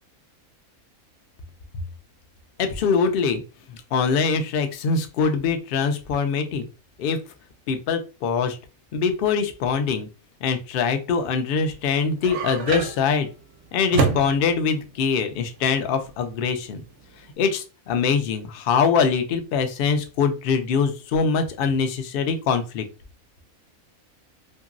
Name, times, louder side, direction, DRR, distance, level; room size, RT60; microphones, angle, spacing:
voice 1, 2.6-3.4 3.9-6.6 7.0-7.2 7.7-8.6 8.9-10.1 10.4-13.3 13.7-16.8 17.4-22.8, left 5 dB, 65° left, 7 dB, 0.5 m, -23 dB
sound 1, 11.8-17.3, right 4 dB, 65° right, 0.8 m, -28 dB
2.8 x 2.6 x 2.5 m, 0.32 s
omnidirectional pair, 1.5 m